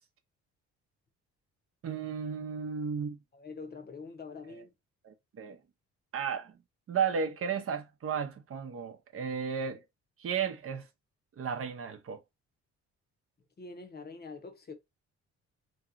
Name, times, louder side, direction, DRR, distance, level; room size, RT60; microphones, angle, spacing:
voice 1, 1.8-3.2 5.0-5.6 6.1-6.5 6.9-9.8 10.2-10.9 11.4-12.2, right 6 dB, 50° right, 0.7 m, -34 dB
voice 2, 3.3-4.7 13.6-14.7, left 4 dB, 30° left, 0.8 m, -45 dB
3.0 x 2.8 x 2.5 m
cardioid pair, 90°, 30 cm